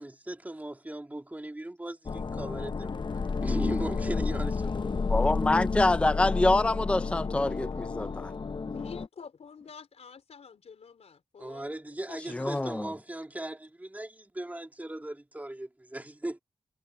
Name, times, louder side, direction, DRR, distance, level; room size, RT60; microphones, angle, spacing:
voice 1, 0.0-5.0 11.4-16.4, right 1 dB, 15° right, 2.9 m, -38 dB
sound 1, 2.1-9.1, left 4 dB, 45° left, 0.9 m, -31 dB
voice 2, 5.1-8.3 12.3-12.9, left 2 dB, 10° left, 0.5 m, -26 dB
voice 3, 8.7-11.7 12.1-12.5, left 6 dB, 85° left, 4.6 m, -47 dB
wide cardioid pair, 110°, 11 cm